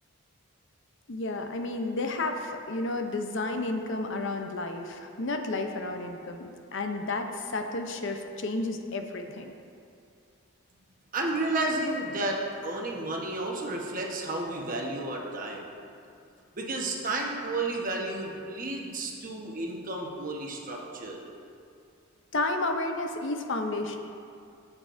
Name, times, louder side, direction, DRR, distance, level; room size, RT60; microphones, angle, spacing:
voice 1, 1.1-9.5 22.3-24.0, left 2 dB, 55° left, 5 dB, 0.6 m, -31 dB
voice 2, 11.1-15.7 16.5-21.2, right 2 dB, 40° right, -1 dB, 1.1 m, -32 dB
16.0 x 7.3 x 2.6 m, 2.5 s
head